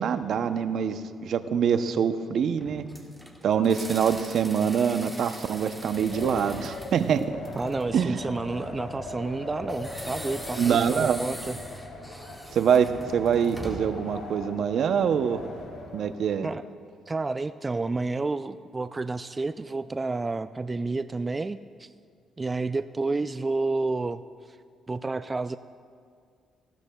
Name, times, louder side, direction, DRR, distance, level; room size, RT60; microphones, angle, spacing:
voice 1, 0.0-2.9 3.4-7.3 7.9-8.2 10.6-11.2 12.5-15.4 15.9-16.5, right 7 dB, 65° right, 10 dB, 0.6 m, -25 dB
sound 1, 2.6-8.0 9.7-14.0, equal, ahead, 1.7 m, -42 dB
Wind, 5.8-16.2, left 2 dB, 75° left, 3.1 m, -40 dB
voice 2, 7.6-11.6 16.4-16.6 17.1-21.9 22.4-24.2 24.9-25.6, right 3 dB, 25° right, 11 dB, 0.3 m, -30 dB
19.0 x 15.5 x 2.3 m, 2.1 s
cardioid pair, 90°, 0 cm